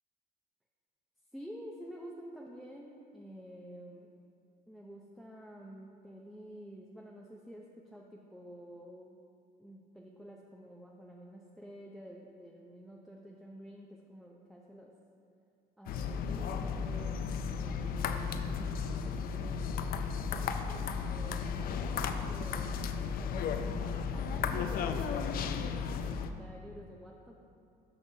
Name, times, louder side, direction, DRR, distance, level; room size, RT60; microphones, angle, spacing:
voice 1, 1.3-4.1 4.7-9.2 9.6-14.9 15.8-17.2 17.5-20.0 20.5-22.9 23.2-27.4, equal, ahead, -2 dB, 0.5 m, -50 dB
sound 1, 15.9-26.3, left 6 dB, 60° left, 0.4 m, -34 dB
12.5 x 5.4 x 2.7 m, 2.5 s
cardioid pair, 110°, 17 cm